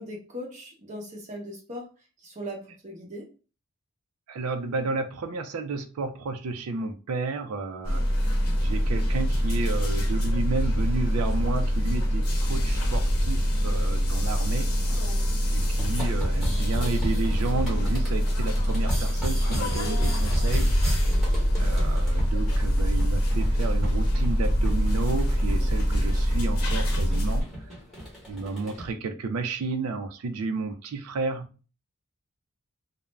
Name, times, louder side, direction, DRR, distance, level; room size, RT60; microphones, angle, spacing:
voice 1, 0.0-1.9 2.2-3.3 21.1-21.3, equal, 35° right, -1 dB, 0.7 m, -39 dB
voice 2, 4.3-8.0 8.6-14.7 15.5-20.7 21.6-27.4 28.3-31.7, right 3 dB, 85° right, 8 dB, 0.4 m, -32 dB
sound 1, 7.8-27.4, equal, 90° left, 0.8 m, -24 dB
sound 2, 15.6-28.9, equal, ahead, 0.9 m, -36 dB
2.4 x 2.0 x 3.1 m, 0.35 s
head